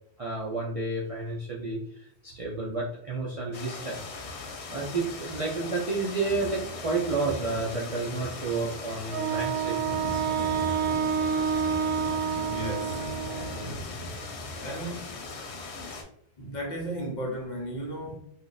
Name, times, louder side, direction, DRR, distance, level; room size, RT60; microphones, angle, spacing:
voice 1, 0.2-4.0 4.3-4.4 4.7-10.2, right 3 dB, 50° right, 0.4 m, -31 dB
sound 1, 3.5-16.0, left 3 dB, 85° left, 0.9 m, -38 dB
Wind instrument woodwind instrument, 9.1-13.7, right 8 dB, 80° right, 0.9 m, -28 dB
voice 2, 12.4-13.0 14.6-15.2 16.4-18.2, equal, 50° left, 0.8 m, -34 dB
2.6 x 2.4 x 3.9 m
omnidirectional pair, 1.1 m